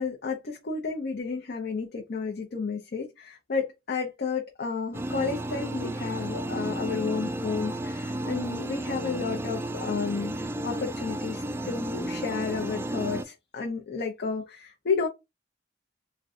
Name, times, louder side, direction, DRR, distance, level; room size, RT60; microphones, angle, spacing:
voice 1, 0.0-15.1, left 5 dB, 55° left, 0.6 m, -32 dB
sound 1, 4.9-13.2, right 1 dB, 15° right, 0.3 m, -33 dB
3.6 x 2.2 x 2.5 m
head